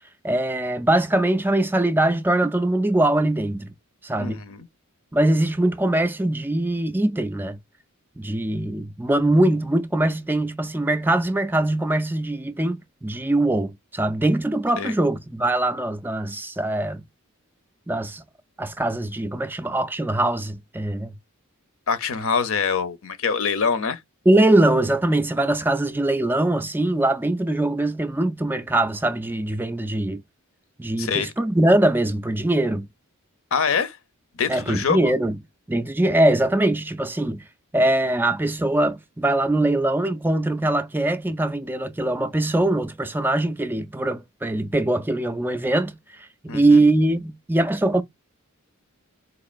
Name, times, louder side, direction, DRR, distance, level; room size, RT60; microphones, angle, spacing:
voice 1, 0.2-3.7 4.0-4.4 5.1-7.6 8.2-17.0 17.9-18.2 18.6-21.1 24.3-30.2 30.8-32.9 34.5-35.4 35.7-37.4 37.7-46.0 46.4-48.0, right 1 dB, 10° right, 0.3 m, -22 dB
voice 2, 4.2-4.7 14.8-14.9 21.9-24.0 31.0-31.3 33.5-34.0 34.3-35.1 46.5-46.8, left 6 dB, 65° left, 0.7 m, -24 dB
4.1 x 2.8 x 2.4 m
head